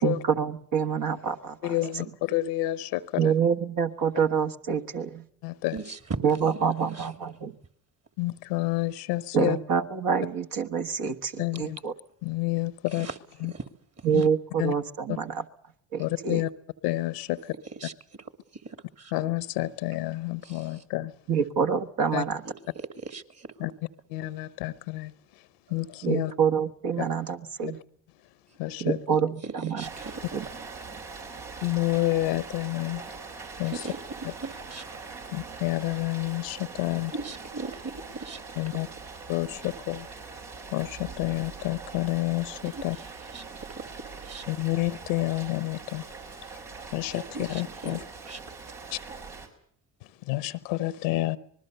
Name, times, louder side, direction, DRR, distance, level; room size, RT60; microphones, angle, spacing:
voice 1, 0.0-2.1 3.2-5.2 6.2-7.5 9.3-11.9 14.0-15.4 15.9-16.4 21.3-22.4 26.0-27.8 28.8-29.8 30.3-30.4, right 7 dB, 60° right, 1.6 m, -27 dB
voice 2, 1.6-3.3 5.4-5.8 8.2-9.6 11.4-11.8 12.2-13.1 13.4-13.5 14.1-14.2 14.6-14.7 16.0-16.5 16.8-17.4 19.1-21.1 22.1-22.2 23.6-23.7 24.1-25.1 25.7-26.3 28.6-29.0 31.6-33.0 33.6-33.7 35.3-37.1 38.6-38.9 39.3-40.1 40.7-43.0 44.5-46.0 46.9-48.0 50.3-51.4, left 17 dB, 80° left, 1.0 m, -29 dB
voice 3, 5.7-6.2 6.5-7.1 12.9-13.2 13.4-13.7 14.0-14.2 17.8-17.9 18.6-19.1 20.4-20.8 22.4-22.5 23.0-23.5 29.4-30.2 33.6-34.8 37.1-38.4 42.6-43.0 43.3-43.4 44.2-44.5 47.3-48.0 48.3-48.4, right 4 dB, 40° right, 2.5 m, -38 dB
Rain, 29.8-49.5, right 4 dB, 75° right, 5.0 m, -42 dB
25.5 x 20.5 x 6.8 m
hypercardioid pair, 50°, 38 cm